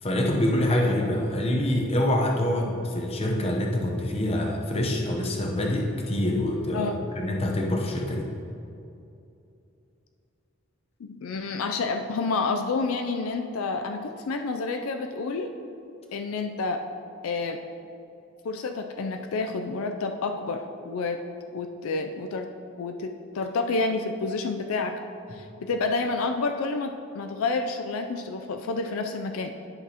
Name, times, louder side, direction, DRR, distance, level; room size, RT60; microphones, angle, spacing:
voice 1, 0.0-8.3, left 1 dB, 30° left, 0 dB, 0.8 m, -25 dB
voice 2, 11.0-15.5 16.1-16.8 17.2-17.6 18.4-21.2 21.5-22.5 22.8-25.0 25.3-29.5, left 3 dB, 80° left, 6 dB, 0.4 m, -29 dB
11.0 x 6.0 x 2.9 m, 2.7 s
head